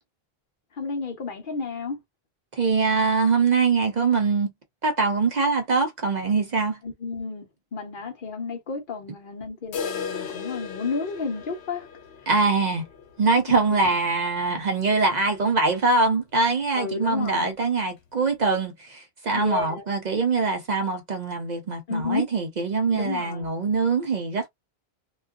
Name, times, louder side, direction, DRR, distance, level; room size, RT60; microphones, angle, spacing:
voice 1, 0.8-2.0 6.8-7.5 7.7-11.9 13.7-14.0 16.8-17.5 19.3-19.8 21.9-22.2 22.9-23.5, left 4 dB, 60° left, 0.9 m, -31 dB
voice 2, 2.5-4.5 4.8-6.8 12.3-12.9 13.2-24.5, right 4 dB, 50° right, 0.6 m, -23 dB
sound 1, 9.7-15.5 15.8-15.9 16.3-16.4 16.9-17.0 17.9-18.0, left 6 dB, 85° left, 1.0 m, -37 dB
2.4 x 2.2 x 2.3 m
omnidirectional pair, 1.1 m